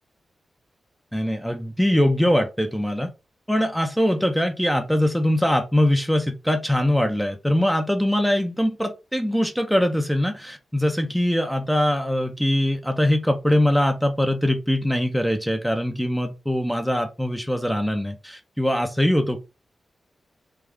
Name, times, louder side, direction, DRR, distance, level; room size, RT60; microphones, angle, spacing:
voice 1, 1.1-3.1 3.5-19.4, left 1 dB, ahead, 0.6 m, -22 dB
3.3 x 2.4 x 3.6 m
cardioid pair, 65°, 0 cm